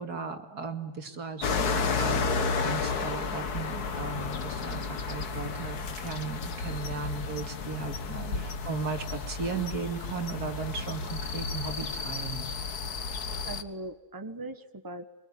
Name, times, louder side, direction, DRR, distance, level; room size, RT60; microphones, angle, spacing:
voice 1, 0.0-12.5, right 5 dB, 80° right, 5 dB, 2.9 m, -36 dB
sound 1, 1.4-13.6, left 4 dB, 80° left, 2.0 m, -32 dB
voice 2, 8.1-8.5 13.0-15.1, right 2 dB, 15° right, 9 dB, 1.4 m, -41 dB
24.5 x 24.0 x 9.7 m, 1.2 s
omnidirectional pair, 1.6 m